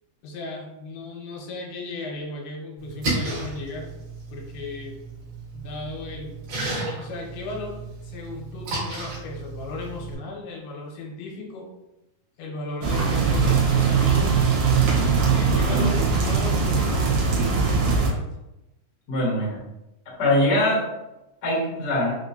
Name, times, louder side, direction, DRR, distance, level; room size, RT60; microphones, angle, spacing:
voice 1, 0.2-3.9 4.3-5.0 5.5-6.3 7.0-11.7 12.4-14.3 15.3-18.3, left 3 dB, 85° left, -1 dB, 2.7 m, -36 dB
Splash splatter, 2.8-10.1, right 2 dB, 55° right, 2.1 m, -33 dB
sound 1, 12.8-18.1, right 5 dB, 70° right, 2.4 m, -21 dB
voice 2, 19.1-19.6 20.2-20.9 21.4-22.1, left 1 dB, 60° left, -6 dB, 1.0 m, -22 dB
5.8 x 2.7 x 2.6 m, 0.93 s
omnidirectional pair, 4.4 m